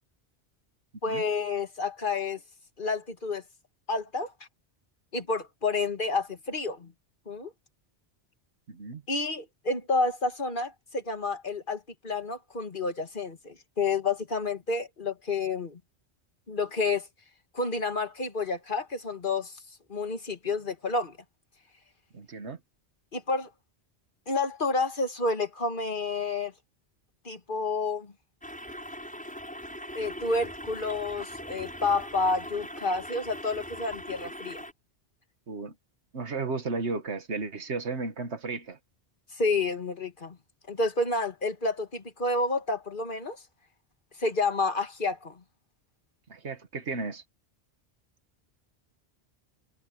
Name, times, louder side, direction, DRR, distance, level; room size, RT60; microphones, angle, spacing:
voice 1, 1.0-2.4 2.8-3.4 3.9-4.3 5.1-6.9 7.3-7.5 9.1-15.8 16.5-17.1 17.5-19.6 19.9-21.2 23.1-23.5 24.3-26.5 27.2-28.1 29.9-34.6 39.3-40.4 40.7-43.4 44.2-45.4, left 3 dB, 50° left, 2.3 m, -29 dB
voice 2, 8.7-9.0 22.1-22.6 35.5-35.7 36.1-38.8 46.3-47.2, right 3 dB, 85° right, 1.9 m, -34 dB
sound 1, 28.4-34.7, equal, 5° left, 6.8 m, -41 dB
omnidirectional pair, 1.1 m